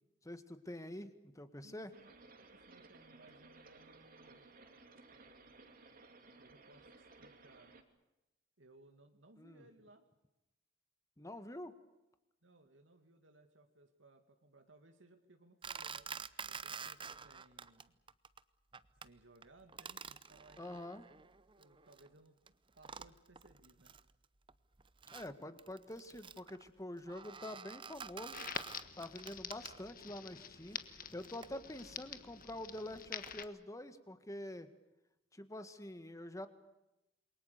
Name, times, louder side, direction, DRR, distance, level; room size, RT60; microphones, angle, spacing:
voice 1, 0.2-1.9 9.4-9.7 11.2-11.7 20.6-21.0 25.1-28.5 29.0-30.8 31.1-34.7 35.3-36.5, left 1 dB, 15° left, 10 dB, 1.8 m, -46 dB
voice 2, 1.6-2.1 2.4-4.6 6.4-7.7 8.6-10.1 12.4-16.1 16.4-18.0 19.0-22.4 22.8-24.0, right 2 dB, 85° right, 5 dB, 2.3 m, -63 dB
sound 1, 1.9-7.8, right 3 dB, 50° right, 2.9 m, -59 dB
sound 2, 15.6-17.8 18.1-18.4 18.7-19.1 19.4-22.1 22.5-22.6 22.8-24.1 24.5-30.1 30.7-33.5, right 6 dB, 25° right, 0.8 m, -49 dB
Crackle, 28.3-33.4, left 8 dB, 50° left, 1.4 m, -47 dB
28.0 x 22.5 x 6.8 m, 0.94 s
head